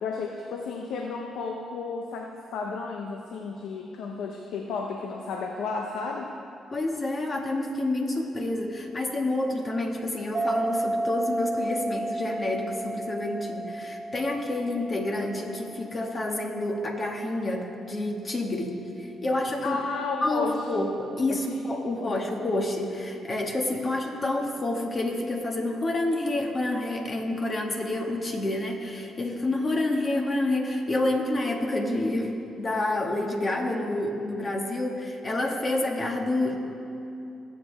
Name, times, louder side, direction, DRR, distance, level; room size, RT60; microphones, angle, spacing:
voice 1, 0.0-6.3 19.6-20.8 21.3-21.7 22.0-22.2, left 4 dB, 80° left, 2 dB, 0.8 m, -33 dB
voice 2, 6.7-19.8 20.2-36.6, left 2 dB, 40° left, 1 dB, 1.9 m, -28 dB
sound 1, 10.3-17.4, right 2 dB, 30° right, 0.5 m, -33 dB
19.5 x 7.9 x 3.5 m, 2.8 s
supercardioid pair, 65°, 0 cm